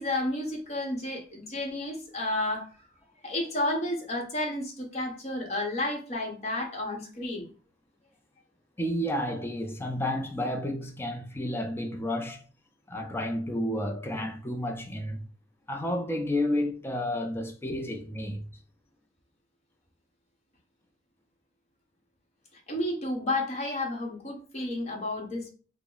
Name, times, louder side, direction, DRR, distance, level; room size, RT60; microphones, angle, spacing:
voice 1, 0.0-2.7 3.2-7.5 22.5-25.5, left 1 dB, 35° left, 1.0 m, -31 dB
voice 2, 8.8-12.4 12.9-15.2 15.7-18.5, left 1 dB, 10° left, 0.4 m, -31 dB
3.4 x 2.0 x 3.9 m
head